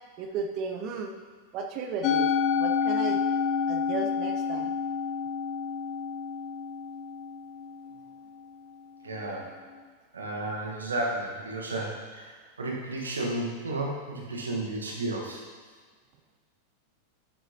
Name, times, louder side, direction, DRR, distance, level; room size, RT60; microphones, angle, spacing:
voice 1, 0.2-1.1 1.5-2.3 2.6-3.2 3.7-4.7, right 5 dB, 40° right, 4 dB, 0.8 m, -34 dB
Musical instrument, 2.0-8.4, left 6 dB, 40° left, 0.5 m, -29 dB
voice 2, 9.0-9.5 10.1-15.4, right 2 dB, 70° right, -1 dB, 1.5 m, -33 dB
11.0 x 8.0 x 2.9 m, 1.5 s
figure-of-eight pair, 90°, 0 cm